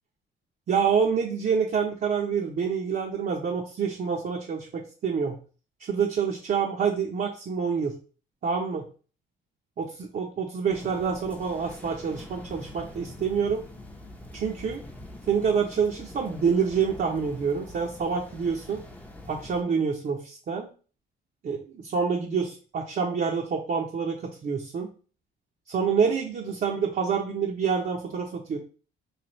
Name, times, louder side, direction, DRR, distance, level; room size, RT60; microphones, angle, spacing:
voice 1, 0.7-5.3 5.8-8.0 8.4-8.8 9.8-13.6 14.3-14.8 15.3-18.8 19.3-20.7 21.4-24.2 24.4-24.9 25.7-28.6, right 6 dB, 45° right, 0 dB, 0.6 m, -27 dB
sound 1, 10.7-19.6, left 1 dB, 5° left, 0.6 m, -44 dB
3.3 x 2.3 x 4.0 m, 0.38 s
cardioid pair, 90°, 20 cm